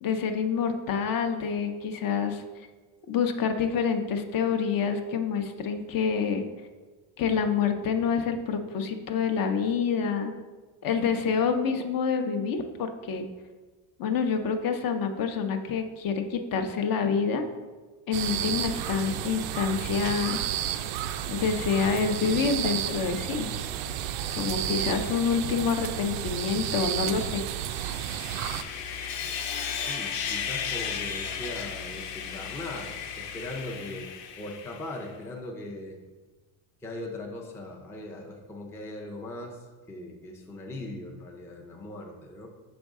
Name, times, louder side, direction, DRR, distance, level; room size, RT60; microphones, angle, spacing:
voice 1, 0.0-2.4 3.1-6.4 7.2-10.3 10.8-13.3 14.0-17.4 18.1-20.4 21.3-23.5 24.4-27.4, left 6 dB, 50° left, 6 dB, 0.6 m, -27 dB
sound 1, 18.1-28.6, right 10 dB, 85° right, 0.5 m, -32 dB
Sawing, 27.6-35.0, left 7 dB, 75° left, 1.0 m, -35 dB
voice 2, 29.7-34.1 34.4-36.0 36.8-42.5, left 1 dB, 5° left, 0 dB, 0.4 m, -39 dB
6.2 x 5.1 x 3.6 m, 1.3 s
cardioid pair, 140°, 46 cm